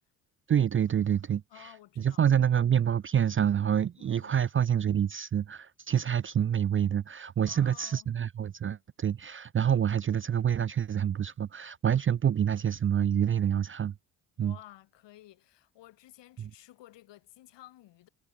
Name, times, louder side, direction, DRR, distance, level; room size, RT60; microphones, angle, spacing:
voice 1, 0.5-1.7 2.0-13.9 14.4-14.6 16.4-16.5, right 9 dB, 25° right, 0.5 m, -27 dB
voice 2, 1.5-2.2 4.0-4.3 7.4-8.1 14.4-18.1, left 15 dB, 60° left, 2.2 m, -53 dB
hypercardioid pair, 50°, 48 cm